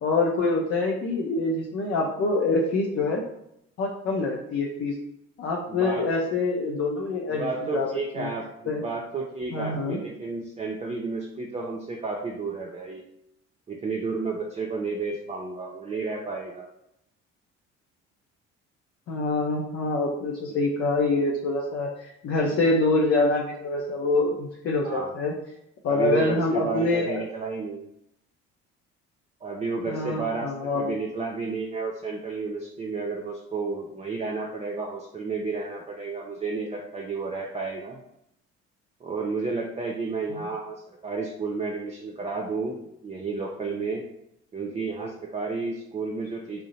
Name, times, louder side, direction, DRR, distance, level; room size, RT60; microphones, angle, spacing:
voice 1, 0.0-3.2 3.8-4.9 5.4-7.9 8.2-8.3 8.7-8.8 9.5-10.0 19.1-25.3 25.8-27.2 29.9-30.9 40.3-40.5, left 3 dB, 45° left, -1 dB, 0.6 m, -25 dB
voice 2, 5.7-6.1 7.3-13.1 13.7-16.7 20.5-20.6 22.4-22.6 24.8-25.1 25.9-27.9 29.4-38.0 39.0-44.0 44.5-46.6, right 4 dB, 20° right, -1 dB, 0.5 m, -32 dB
2.7 x 2.1 x 4.0 m, 0.81 s
figure-of-eight pair, 50°, 35 cm